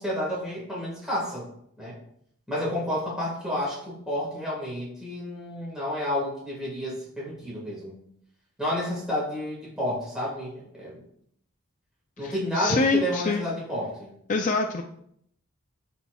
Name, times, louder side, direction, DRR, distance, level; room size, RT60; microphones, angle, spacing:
voice 1, 0.0-1.5 1.8-2.0 2.5-7.9 8.6-11.0 12.2-14.1, equal, 5° right, -6 dB, 1.7 m, -30 dB
voice 2, 12.2-13.5 14.3-14.8, left 3 dB, 35° left, 2 dB, 0.4 m, -25 dB
11.0 x 4.1 x 2.3 m, 0.70 s
head